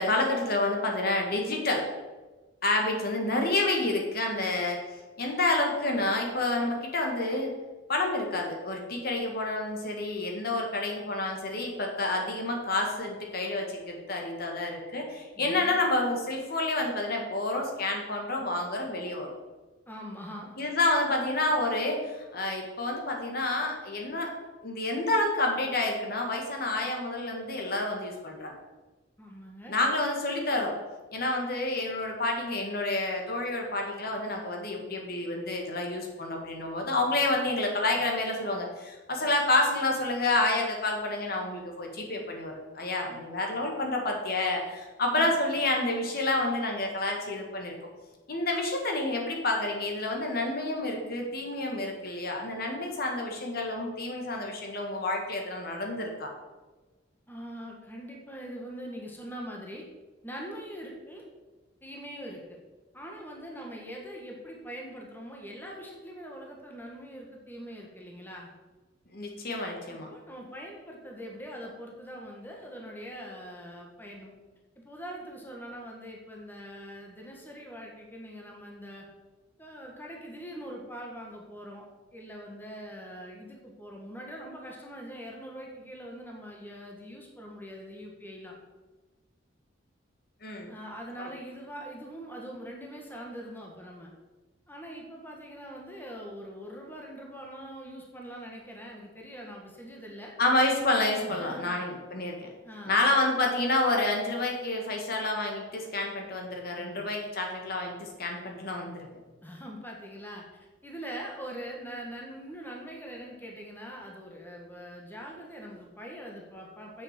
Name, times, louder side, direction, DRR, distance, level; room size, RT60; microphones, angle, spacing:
voice 1, 0.0-1.9 2.6-4.8 5.2-7.5 7.9-19.3 20.6-24.3 24.6-28.5 29.7-30.7 31.1-47.7 48.3-56.3 69.1-70.1 90.4-90.7 91.2-91.3 100.4-102.5 102.9-109.1, left 2 dB, 55° left, 1 dB, 1.9 m, -29 dB
voice 2, 15.3-15.8 19.9-20.6 29.2-29.8 45.1-45.3 57.3-59.8 60.2-61.2 61.8-62.6 62.9-68.5 69.9-74.3 74.7-79.1 79.6-81.8 82.1-88.5 90.7-94.1 94.7-100.3 101.2-101.8 102.6-103.1 106.8-107.0 109.4-117.0, equal, 10° left, -1 dB, 1.5 m, -43 dB
7.4 x 6.6 x 7.5 m, 1.2 s
head